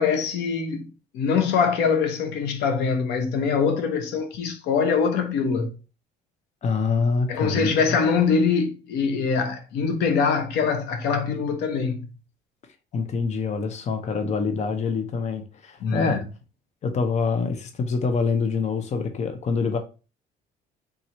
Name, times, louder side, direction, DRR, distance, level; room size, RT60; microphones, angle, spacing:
voice 1, 0.0-5.7 7.3-12.1 15.8-16.2, left 5 dB, 85° left, 0.9 m, -23 dB
voice 2, 6.6-7.7 12.9-16.2 16.8-19.8, left 4 dB, 45° left, 0.8 m, -25 dB
3.7 x 3.0 x 4.2 m
cardioid pair, 110°, 17 cm